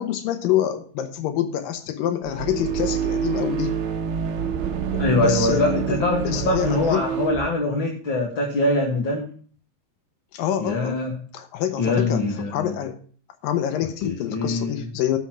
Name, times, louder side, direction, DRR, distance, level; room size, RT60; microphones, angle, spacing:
voice 1, 0.0-3.8 4.9-7.0 10.3-11.0 11.3-13.0 13.4-15.2, left 10 dB, 85° left, 8 dB, 2.7 m, -26 dB
sound 1, 2.2-7.5, right 8 dB, 60° right, 1.4 m, -27 dB
voice 2, 5.0-9.3 10.6-11.2 11.8-12.8 14.0-14.8, left 2 dB, 45° left, 0 dB, 2.1 m, -23 dB
13.0 x 6.3 x 5.9 m, 0.43 s
omnidirectional pair, 3.9 m